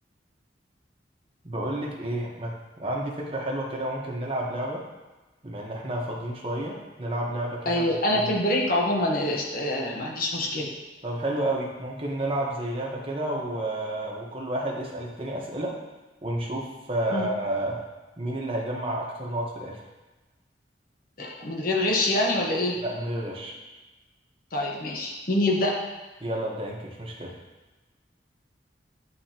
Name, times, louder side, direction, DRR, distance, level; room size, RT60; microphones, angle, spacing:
voice 1, 1.4-2.5 2.8-4.8 5.4-7.8 8.1-8.3 11.0-15.7 16.2-17.8 18.2-19.8 22.8-23.5 26.2-27.3, right 1 dB, 30° right, -3 dB, 1.1 m, -30 dB
voice 2, 7.7-10.7 17.1-17.3 21.2-22.8 24.5-25.8, left 1 dB, 50° left, -1 dB, 1.1 m, -25 dB
9.3 x 4.2 x 2.9 m, 1.2 s
head